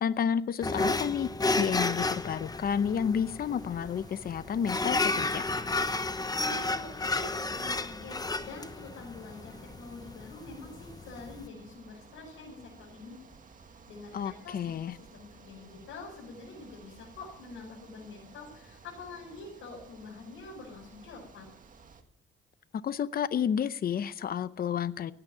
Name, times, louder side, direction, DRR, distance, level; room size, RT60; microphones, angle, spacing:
voice 1, 0.0-1.3 1.6-5.4 14.1-14.9 22.8-25.1, left 8 dB, 50° left, 15 dB, 0.7 m, -30 dB
sound 1, 0.6-11.5, left 3 dB, 20° left, 1.0 m, -32 dB
sound 2, 3.4-22.0, right 5 dB, 40° right, 1.9 m, -55 dB
voice 2, 6.4-13.2 13.9-21.4, left 3 dB, 85° left, -3 dB, 5.8 m, -46 dB
17.5 x 9.0 x 8.9 m, 0.71 s
cardioid pair, 90°, 20 cm